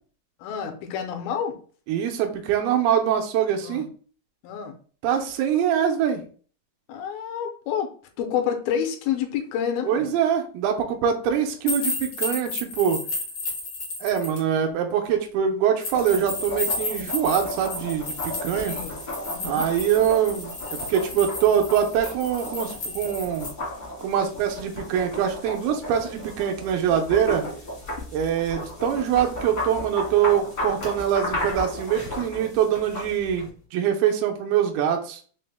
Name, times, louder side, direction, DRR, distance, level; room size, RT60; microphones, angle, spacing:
voice 1, 0.4-1.5 3.6-3.8 4.4-4.7 6.9-7.9 8.2-10.1 18.6-19.0 19.4-19.6, left 8 dB, 85° left, 4 dB, 2.4 m, -28 dB
voice 2, 1.9-3.9 5.0-6.3 9.9-13.0 14.0-18.8 19.4-23.5 24.0-27.4 28.1-35.2, right 9 dB, 85° right, 4 dB, 2.5 m, -24 dB
sound 1, 11.7-14.4 15.8-23.5, left 3 dB, 65° left, 1.1 m, -32 dB
sound 2, 15.9-33.5, left 1 dB, 45° left, 0.7 m, -35 dB
5.9 x 2.1 x 3.2 m, 0.42 s
omnidirectional pair, 4.4 m